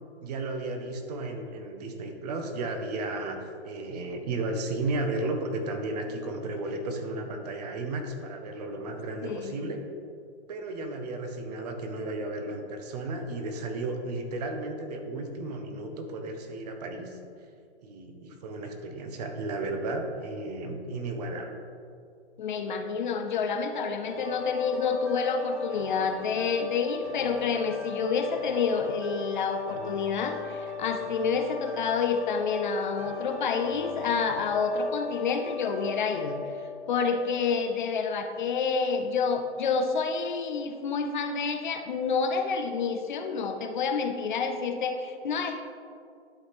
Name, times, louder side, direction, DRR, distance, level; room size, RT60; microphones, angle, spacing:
voice 1, 0.2-9.8 10.5-17.2 17.8-21.6, right 2 dB, 35° right, 5 dB, 0.9 m, -34 dB
voice 2, 9.2-9.8 22.4-36.4 36.9-45.6, left 5 dB, 45° left, 6 dB, 0.6 m, -28 dB
sound 1, 24.0-37.7 38.2-38.3, left 6 dB, 10° right, 1.7 m, -38 dB
11.5 x 4.0 x 3.4 m, 2.4 s
hypercardioid pair, 140°, 33 cm